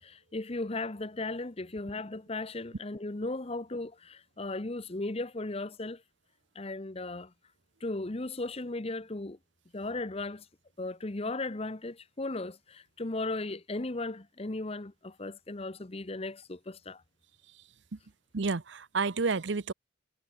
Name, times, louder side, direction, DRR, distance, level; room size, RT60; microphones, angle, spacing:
voice 1, 0.0-6.0 6.5-7.3 7.8-9.4 9.7-10.5 10.8-17.0, left 2 dB, 30° left, 0.9 m, -36 dB
voice 2, 18.3-19.7, right 4 dB, 60° right, 0.7 m, -30 dB
head